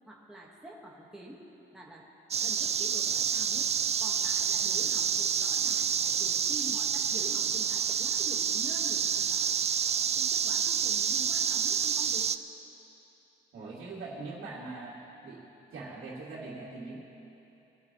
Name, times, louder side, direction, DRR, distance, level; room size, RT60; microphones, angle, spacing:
voice 1, 0.1-1.4 1.7-2.1 2.4-3.7 4.0-9.7 10.1-12.3 13.8-14.0, right 1 dB, 5° right, -4 dB, 1.4 m, -47 dB
sound 1, 2.3-12.4, right 7 dB, 30° right, 0.4 m, -28 dB
voice 2, 13.5-15.4 15.7-17.0, right 3 dB, 80° right, -8 dB, 2.5 m, -42 dB
21.5 x 12.5 x 3.0 m, 3.0 s
cardioid pair, 125°, 21 cm